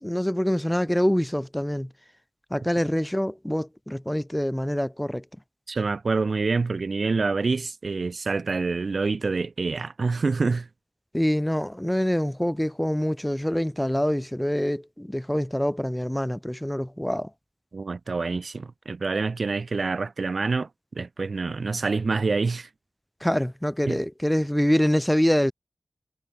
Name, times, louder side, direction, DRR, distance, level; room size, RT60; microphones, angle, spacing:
voice 1, 0.0-1.9 2.5-5.2 11.1-17.3 23.2-25.5, equal, 10° left, 1.9 m, -25 dB
voice 2, 5.7-10.7 17.7-22.7 23.8-24.0, right 4 dB, 75° right, 2.5 m, -26 dB
cardioid pair, 45°, 0 cm